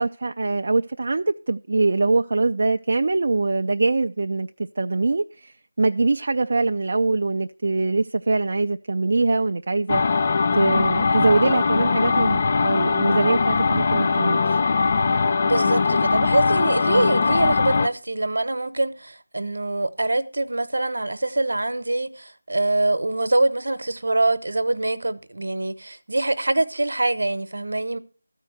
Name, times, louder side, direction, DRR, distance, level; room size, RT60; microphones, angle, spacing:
voice 1, 0.0-4.5 4.8-10.3 10.5-14.6, right 3 dB, 55° right, 0.4 m, -23 dB
sound 1, 9.9-17.9, left 4 dB, 35° left, 0.5 m, -21 dB
voice 2, 15.4-28.0, right 2 dB, 75° right, 1.0 m, -24 dB
13.5 x 4.6 x 7.9 m
figure-of-eight pair, 170°, 0 cm